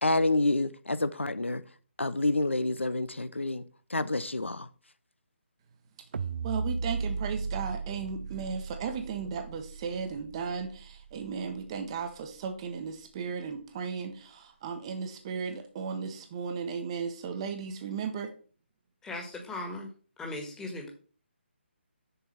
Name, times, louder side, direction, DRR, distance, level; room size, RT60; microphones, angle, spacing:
voice 1, 0.0-1.6 2.0-3.6 3.9-4.7, left 2 dB, 85° left, 0.6 m, -28 dB
sound 1, 6.1-12.4, right 4 dB, 55° right, 0.4 m, -37 dB
voice 2, 6.4-18.3, right 6 dB, 30° right, 1.0 m, -35 dB
voice 3, 19.0-19.9 20.2-20.9, left 2 dB, 10° left, 1.6 m, -38 dB
6.7 x 4.5 x 5.8 m
figure-of-eight pair, 145°, 6 cm